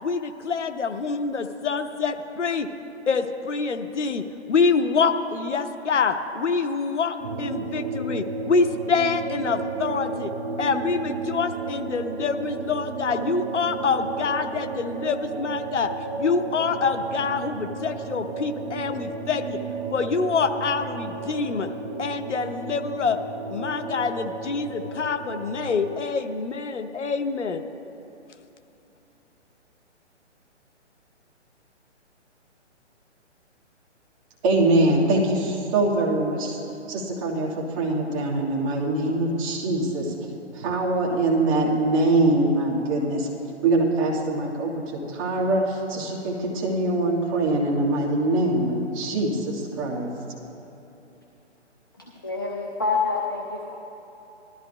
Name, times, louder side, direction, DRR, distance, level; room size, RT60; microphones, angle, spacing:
voice 1, 0.0-2.7 3.1-10.3 10.6-15.9 16.2-19.6 19.9-21.7 22.0-23.2 23.5-27.6, left 5 dB, 75° left, 8 dB, 0.8 m, -26 dB
sound 1, 7.2-26.0, right 4 dB, 50° right, 0.8 m, -33 dB
voice 2, 34.4-36.6 36.9-37.5 37.8-40.1 40.5-43.3 43.6-44.7 45.1-50.1, right 2 dB, 30° right, -3 dB, 1.6 m, -23 dB
voice 3, 52.0-53.7, left 4 dB, 20° left, -2 dB, 0.3 m, -27 dB
19.5 x 13.0 x 2.2 m, 3.0 s
figure-of-eight pair, 140°, 36 cm